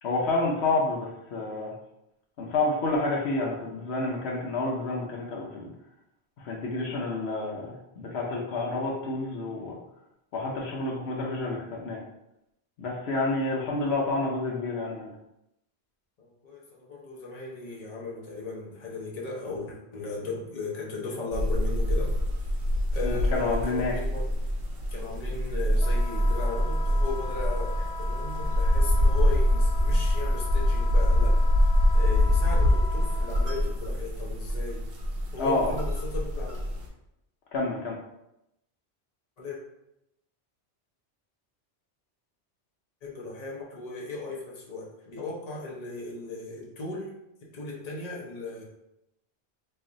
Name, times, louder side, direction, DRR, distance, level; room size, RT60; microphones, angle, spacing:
voice 1, 0.0-1.7 2.4-5.7 6.4-9.8 10.3-12.0 12.8-15.1 23.0-23.9 35.4-35.7 37.5-38.0, left 2 dB, 70° left, -2 dB, 0.9 m, -29 dB
voice 2, 16.2-22.2 22.9-24.3 24.9-31.4 31.9-34.8 35.3-36.6 39.4-39.6 43.0-47.1 47.5-48.6, left 3 dB, 40° left, -3 dB, 0.8 m, -36 dB
sound 1, 21.3-36.9, left 1 dB, 65° right, 0.9 m, -25 dB
Wind instrument woodwind instrument, 25.8-33.6, left 4 dB, 20° left, 1.4 m, -40 dB
3.2 x 2.4 x 3.8 m, 0.85 s
omnidirectional pair, 1.1 m